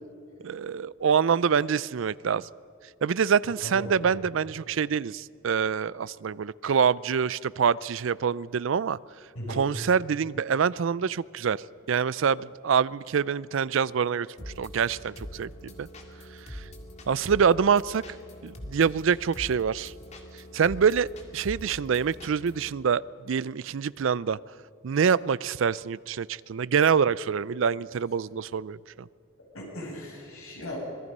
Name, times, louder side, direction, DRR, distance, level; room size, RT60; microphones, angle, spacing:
voice 1, 0.4-2.4 3.0-9.0 9.5-15.9 16.5-16.6 17.1-18.0 18.4-19.9 20.5-24.4 24.8-29.1, right 6 dB, 65° right, 20 dB, 0.4 m, -26 dB
voice 2, 3.6-4.0 9.3-9.7 29.5-30.8, left 1 dB, 85° left, -2 dB, 7.7 m, -37 dB
sound 1, 14.4-22.7, equal, 30° left, 2.2 m, -43 dB
25.5 x 19.5 x 5.4 m, 2.3 s
head